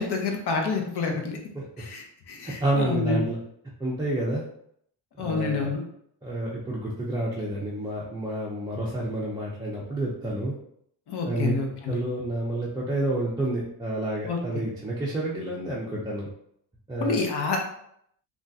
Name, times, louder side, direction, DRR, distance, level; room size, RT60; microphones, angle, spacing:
voice 1, 0.0-1.4 1.8-3.3 5.2-5.8 11.1-12.0 14.3-14.4 17.0-17.6, left 4 dB, 60° left, 2 dB, 0.8 m, -28 dB
voice 2, 2.4-3.4 3.8-4.4 5.2-5.7 6.2-10.5 11.2-11.5 11.9-16.3 16.9-17.2, right 1 dB, 10° right, -6 dB, 0.4 m, -29 dB
3.4 x 2.4 x 2.6 m, 0.70 s
cardioid pair, 115°, 45 cm